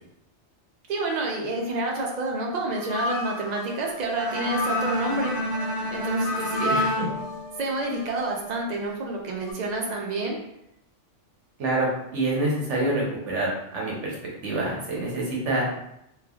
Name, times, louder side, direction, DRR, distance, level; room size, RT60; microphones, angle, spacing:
voice 1, 0.9-5.3 5.9-7.0 7.6-10.4, right 2 dB, 60° right, -1 dB, 0.4 m, -29 dB
sound 1, 2.8-8.7 9.4-9.5, left 3 dB, 75° left, 0.9 m, -33 dB
Bowed string instrument, 4.1-8.3, equal, ahead, 1.0 m, -30 dB
voice 2, 6.6-7.1 11.6-14.2 14.4-15.6, right 2 dB, 75° right, -3 dB, 1.1 m, -27 dB
3.2 x 2.2 x 2.3 m, 0.81 s
omnidirectional pair, 1.2 m